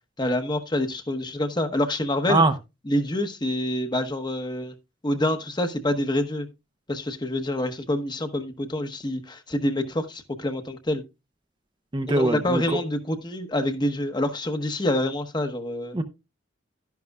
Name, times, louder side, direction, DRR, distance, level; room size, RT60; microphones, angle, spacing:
voice 1, 0.2-2.4 2.9-4.7 5.0-6.5 6.9-11.0 12.1-16.0, left 1 dB, 25° left, 1.0 m, -26 dB
voice 2, 11.9-12.8 15.9-16.0, right 2 dB, 25° right, 0.7 m, -22 dB
12.0 x 10.5 x 2.3 m
head